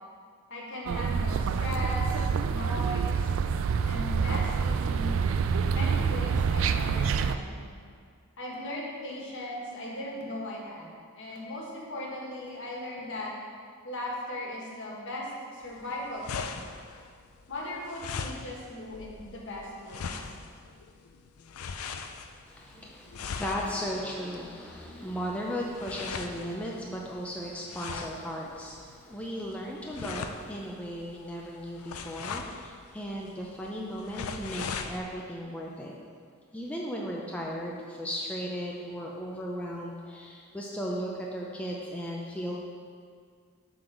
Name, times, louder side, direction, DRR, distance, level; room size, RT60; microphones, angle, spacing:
voice 1, 0.5-3.3 3.8-5.1 5.7-7.7 8.4-10.9 11.2-13.3 13.8-16.6 17.5-20.1, left 1 dB, 55° left, -3 dB, 1.5 m, -38 dB
sound 1, 0.9-7.4, right 6 dB, 60° right, 0.3 m, -27 dB
sound 2, 15.6-35.0, left 5 dB, 80° left, 0.5 m, -41 dB
voice 2, 22.4-35.9 36.5-42.6, equal, 5° left, -3 dB, 0.5 m, -36 dB
7.7 x 4.0 x 6.2 m, 2.1 s
head